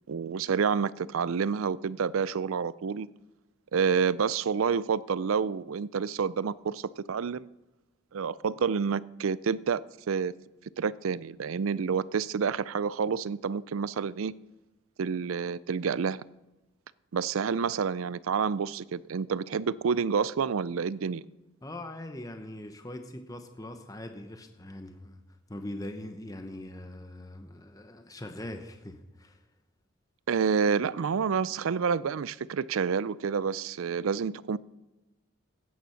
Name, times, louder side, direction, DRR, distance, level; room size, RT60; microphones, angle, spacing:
voice 1, 0.1-3.1 3.7-7.5 8.1-10.3 10.8-14.3 15.0-16.2 17.1-21.2 30.3-34.6, right 6 dB, 85° right, 0.4 m, -29 dB
voice 2, 21.6-25.2 25.5-29.4, left 1 dB, 15° left, 0.9 m, -41 dB
15.5 x 9.5 x 5.7 m
head